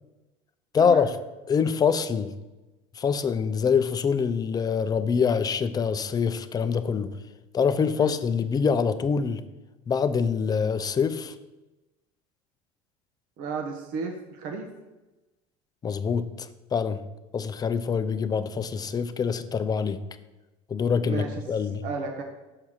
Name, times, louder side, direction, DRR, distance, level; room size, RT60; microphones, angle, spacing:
voice 1, 0.7-1.1 1.5-2.3 3.0-7.1 7.5-9.4 9.9-11.3 15.8-17.0 17.3-20.0 20.7-21.8, left 6 dB, 25° left, 11 dB, 0.5 m, -25 dB
voice 2, 13.4-14.7 21.0-21.4 21.8-22.2, right 4 dB, 60° right, 3 dB, 1.0 m, -33 dB
6.7 x 4.6 x 5.9 m, 1.1 s
supercardioid pair, 115°, 15 cm